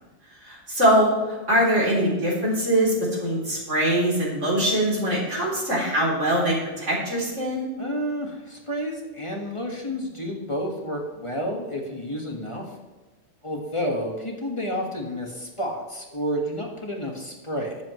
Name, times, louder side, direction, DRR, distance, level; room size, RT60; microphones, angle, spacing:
voice 1, 0.4-2.9 3.2-7.7, right 1 dB, 90° right, -4 dB, 3.9 m, -22 dB
voice 2, 7.8-12.6 13.4-17.8, equal, 25° left, 0 dB, 1.6 m, -30 dB
20.5 x 7.4 x 3.1 m, 1.2 s
omnidirectional pair, 1.2 m